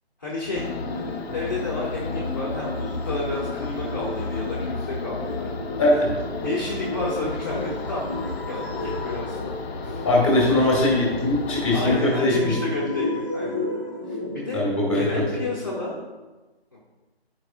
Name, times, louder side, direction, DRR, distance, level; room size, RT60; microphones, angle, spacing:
voice 1, 0.2-5.5 6.4-10.1 10.3-10.6 10.8-11.0 11.7-13.6 14.0-14.6 14.9-16.0 16.7-16.8, left 2 dB, 20° left, -7 dB, 0.8 m, -31 dB
sound 1, 0.5-12.0, left 3 dB, 70° left, 0.7 m, -33 dB
sound 2, 0.6-15.9, left 2 dB, 20° right, 0.5 m, -34 dB
voice 2, 5.8-6.1 10.0-12.5 14.5-15.2, left 1 dB, ahead, -4 dB, 1.1 m, -21 dB
10.5 x 4.7 x 2.4 m, 1.2 s
figure-of-eight pair, 165°, 32 cm